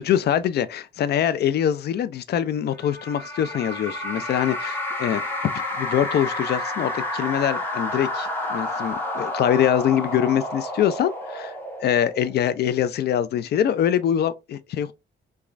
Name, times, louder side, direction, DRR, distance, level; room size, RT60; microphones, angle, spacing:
voice 1, 0.0-5.2 5.8-11.5 11.8-14.9, left 10 dB, 55° left, 0.4 m, -24 dB
sound 1, 2.8-12.5, left 1 dB, 10° left, 1.1 m, -30 dB
3.0 x 2.3 x 2.4 m
cardioid pair, 90°, 20 cm